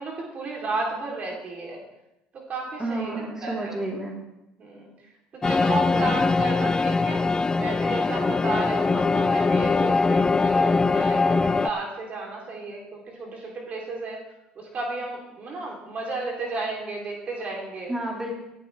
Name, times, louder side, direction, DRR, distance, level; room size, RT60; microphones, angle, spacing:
voice 1, 0.0-1.8 2.3-3.8 4.6-4.9 5.3-7.2 7.6-14.2 14.6-17.9, right 2 dB, 45° right, -1 dB, 3.4 m, -33 dB
voice 2, 2.8-4.2 5.9-6.2 17.9-18.3, right 1 dB, 15° right, -2 dB, 3.8 m, -31 dB
sound 1, 5.4-11.7, left 4 dB, 20° left, 0.4 m, -22 dB
17.0 x 12.0 x 3.5 m, 0.89 s
supercardioid pair, 90°, 4 cm